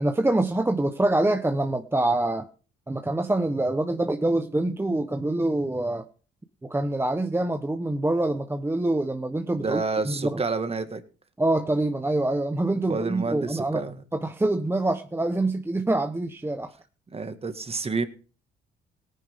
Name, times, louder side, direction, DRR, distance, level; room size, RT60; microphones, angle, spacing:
voice 1, 0.0-2.5 2.9-6.1 6.6-10.4 11.4-13.8 14.1-16.7, right 2 dB, 10° right, 7 dB, 1.0 m, -25 dB
voice 2, 9.6-11.0 12.9-14.0 17.1-18.1, right 4 dB, 30° right, 9 dB, 1.9 m, -29 dB
17.5 x 9.8 x 3.7 m, 0.38 s
cardioid pair, 90°, 20 cm